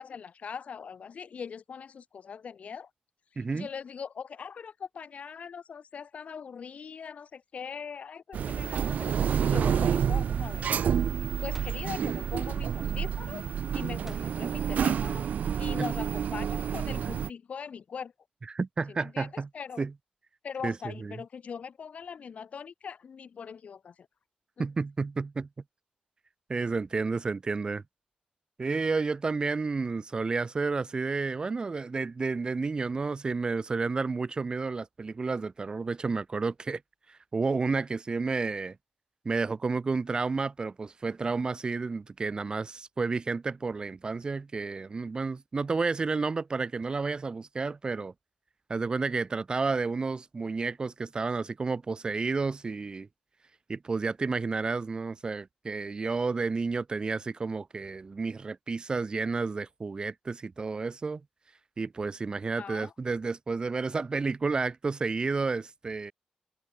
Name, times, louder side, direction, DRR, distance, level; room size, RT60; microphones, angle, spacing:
voice 1, 0.0-2.9 3.5-9.2 9.4-10.9 11.2-13.4 13.7-15.3 15.6-18.1 18.9-19.8 20.4-24.1 24.6-24.7 62.6-62.9, left 6 dB, 55° left, 7.0 m, -41 dB
voice 2, 3.4-3.7 15.8-15.9 18.5-19.5 19.8-19.9 20.6-21.1 24.6-25.5 26.5-27.8 28.6-36.8 37.1-38.7 39.2-48.1 48.7-53.1 53.7-61.2 61.8-66.1, right 4 dB, 35° right, 3.3 m, -31 dB
sound 1, 8.3-17.3, right 8 dB, 80° right, 1.9 m, -29 dB
sound 2, 11.5-12.0 14.1-14.7, right 2 dB, 15° right, 3.5 m, -48 dB
open air
wide cardioid pair, 140°, 3 cm